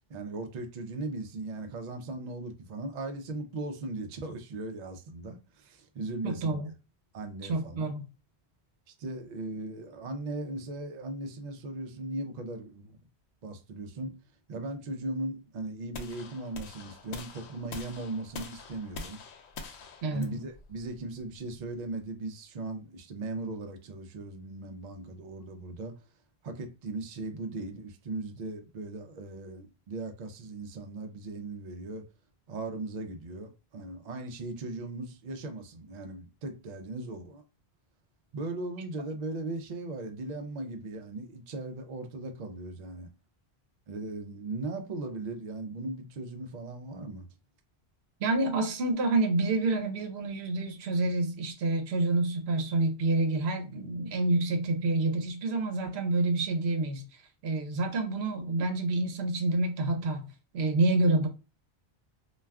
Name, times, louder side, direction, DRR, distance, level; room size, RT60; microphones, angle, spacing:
voice 1, 0.1-6.6 7.1-7.9 9.0-13.0 13.4-14.2 14.5-19.2 20.1-26.0 26.4-32.1 32.5-37.4 38.3-43.1 43.9-47.3, right 2 dB, 55° right, 0.5 m, -38 dB
voice 2, 6.2-6.7 7.4-8.0 20.0-20.3 48.2-57.0 57.4-60.3 60.5-61.3, right 2 dB, 75° right, 0.9 m, -28 dB
sound 1, 15.9-22.0, left 4 dB, 90° left, 0.9 m, -45 dB
2.3 x 2.2 x 3.4 m
omnidirectional pair, 1.1 m